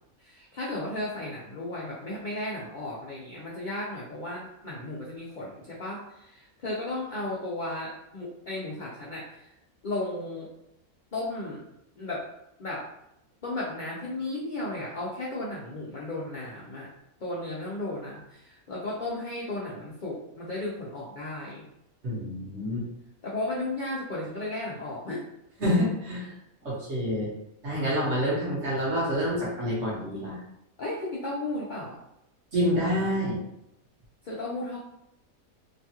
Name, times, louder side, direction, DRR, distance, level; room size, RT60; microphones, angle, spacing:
voice 1, 0.2-9.5 9.8-10.5 11.1-11.6 12.0-12.3 12.6-12.9 13.4-16.9 17.2-21.6 23.2-25.2 26.3-26.4 30.8-32.0 34.2-34.8, left 2 dB, 65° left, -5 dB, 0.4 m, -34 dB
voice 2, 22.0-22.9 25.6-26.2 26.6-27.3 27.6-30.4 32.5-33.4, equal, 55° right, -6 dB, 1.3 m, -27 dB
3.0 x 2.3 x 2.8 m, 0.81 s
omnidirectional pair, 1.5 m